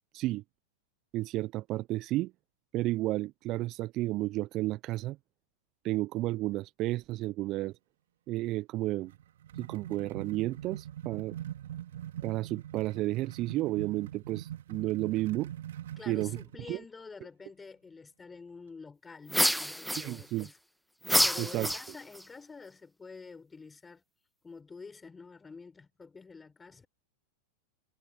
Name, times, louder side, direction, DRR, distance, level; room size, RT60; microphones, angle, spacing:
voice 1, 1.1-2.3 2.7-5.2 5.8-7.7 8.3-9.1 9.6-11.4 12.2-15.5 16.1-16.4 16.7-16.8 19.9-20.5 21.4-21.7, right 17 dB, 40° right, 0.5 m, -32 dB
sound 1, 9.0-16.6, right 11 dB, 65° right, 2.1 m, -43 dB
voice 2, 16.0-20.6 21.2-24.0 24.4-26.9, left 4 dB, 15° left, 4.3 m, -48 dB
sound 2, 19.3-20.5 21.0-22.2, equal, ahead, 1.2 m, -28 dB
hypercardioid pair, 95°, 0 cm